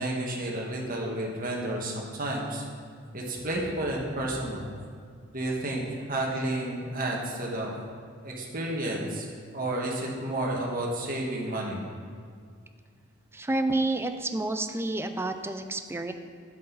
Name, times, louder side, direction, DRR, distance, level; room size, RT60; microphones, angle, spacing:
voice 1, 0.0-2.6 3.1-4.7 5.3-7.8 8.2-9.3 9.5-11.8, right 1 dB, 45° right, -2 dB, 1.6 m, -31 dB
voice 2, 13.3-16.1, right 2 dB, 10° right, 8 dB, 0.5 m, -29 dB
10.5 x 7.7 x 4.0 m, 2.1 s
head